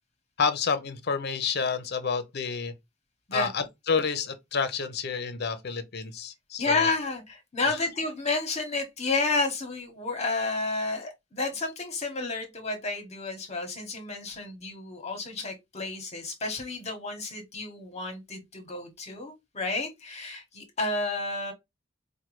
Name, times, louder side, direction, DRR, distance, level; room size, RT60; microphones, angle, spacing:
voice 1, 0.4-2.7 3.3-6.9, left 5 dB, 55° left, 0.6 m, -29 dB
voice 2, 6.6-21.5, left 3 dB, 35° left, 1.0 m, -31 dB
4.5 x 2.2 x 3.0 m
head